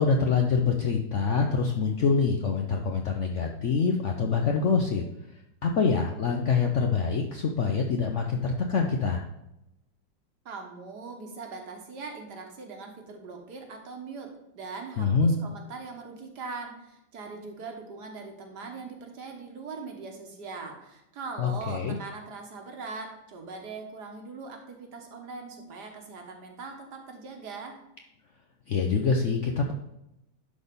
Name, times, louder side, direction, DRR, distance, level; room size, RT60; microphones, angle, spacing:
voice 1, 0.0-5.0 5.6-9.2 15.0-15.3 21.4-22.0 28.7-29.7, left 5 dB, 60° left, 2 dB, 0.8 m, -25 dB
voice 2, 10.5-27.7, right 4 dB, 65° right, 3 dB, 1.8 m, -41 dB
11.0 x 4.2 x 5.2 m, 0.87 s
omnidirectional pair, 2.0 m